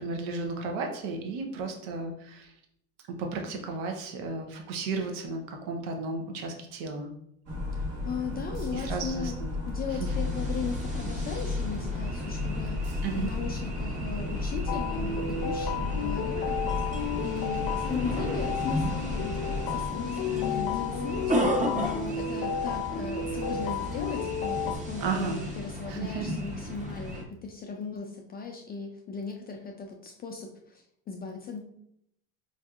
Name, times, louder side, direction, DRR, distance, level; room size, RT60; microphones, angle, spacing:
voice 1, 0.0-2.5 3.2-7.1 8.7-9.3 10.0-10.1 13.0-13.3 25.0-25.4 25.9-26.3, right 4 dB, 75° right, 3 dB, 0.8 m, -33 dB
sound 1, 7.5-19.9, left 2 dB, 45° right, 1.2 m, -34 dB
voice 2, 7.7-9.4 9.7-12.8 13.1-31.6, left 5 dB, 30° left, 2 dB, 0.4 m, -37 dB
sound 2, 10.0-27.2, equal, 20° right, 0.8 m, -35 dB
sound 3, 14.7-24.8, left 6 dB, 65° left, 0.6 m, -32 dB
4.7 x 2.6 x 2.4 m, 0.75 s
supercardioid pair, 110°, 35 cm